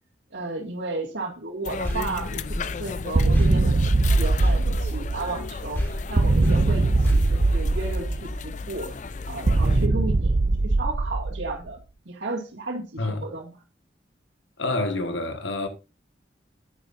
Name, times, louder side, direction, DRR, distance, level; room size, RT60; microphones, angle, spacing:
voice 1, 0.3-5.8 6.1-8.9 9.3-11.8 12.1-13.5, right 2 dB, 80° right, 2.0 m, -33 dB
sound 1, 1.6-9.9, left 4 dB, 40° left, 0.5 m, -34 dB
sound 2, 1.8-5.5 5.7-8.2, equal, 15° left, 3.7 m, -33 dB
sound 3, 3.1-5.4 6.2-8.5 9.5-11.7, right 2 dB, 40° right, 0.5 m, -21 dB
voice 2, 14.6-15.7, left 2 dB, 90° left, 1.4 m, -27 dB
10.5 x 9.6 x 2.6 m
head